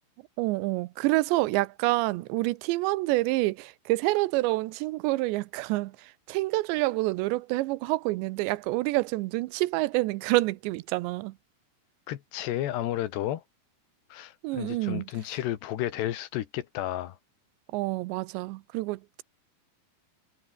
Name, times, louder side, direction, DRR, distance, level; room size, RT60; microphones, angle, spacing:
voice 1, 0.4-5.9 6.3-11.3 14.4-15.1 17.7-19.2, right 20 dB, 80° right, 2.9 m, -27 dB
voice 2, 12.1-13.4 14.1-17.2, left 13 dB, 75° left, 3.5 m, -32 dB
omnidirectional pair, 5.1 m